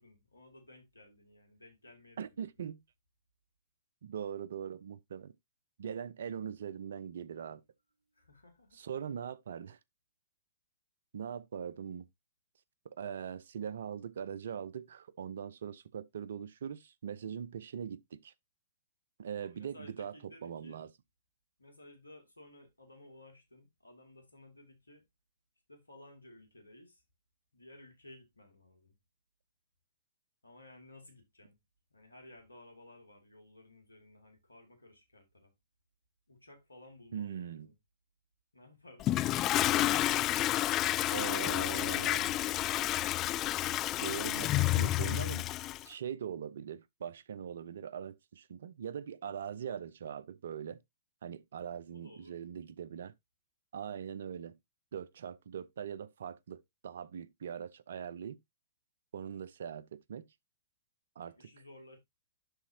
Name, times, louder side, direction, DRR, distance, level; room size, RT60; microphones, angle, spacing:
voice 1, 0.0-2.7 8.1-9.0 19.3-20.8 21.6-25.0 25.7-27.0 27.5-29.0 30.4-31.6 31.9-35.5 36.3-37.7 38.5-39.2 51.9-52.4 61.2-62.0, left 1 dB, 90° left, 2.4 m, -56 dB
voice 2, 2.2-2.8 4.0-5.3 5.8-7.6 8.7-9.8 11.1-12.1 12.8-18.3 19.2-20.1 20.4-20.9 37.1-37.7 41.1-42.4 44.0-45.5 45.8-50.8 51.2-53.1 53.7-54.6 54.9-58.4 59.1-60.3 61.2-61.5, right 8 dB, 65° right, 0.6 m, -41 dB
Toilet flush, 39.0-45.8, left 15 dB, 30° left, 0.3 m, -30 dB
11.5 x 4.2 x 2.7 m
figure-of-eight pair, 115°, 0 cm